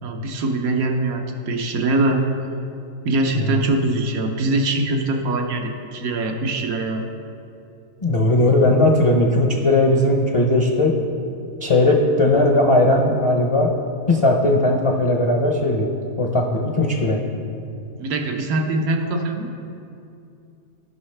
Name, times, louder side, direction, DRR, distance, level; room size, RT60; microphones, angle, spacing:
voice 1, 0.0-2.2 3.0-7.1 18.0-19.5, right 2 dB, 90° right, 3 dB, 1.3 m, -22 dB
voice 2, 8.0-10.9 11.6-13.7 14.1-15.9 16.2-17.2, left 2 dB, 40° left, 0 dB, 0.5 m, -18 dB
15.0 x 5.6 x 3.3 m, 2.6 s
omnidirectional pair, 1.4 m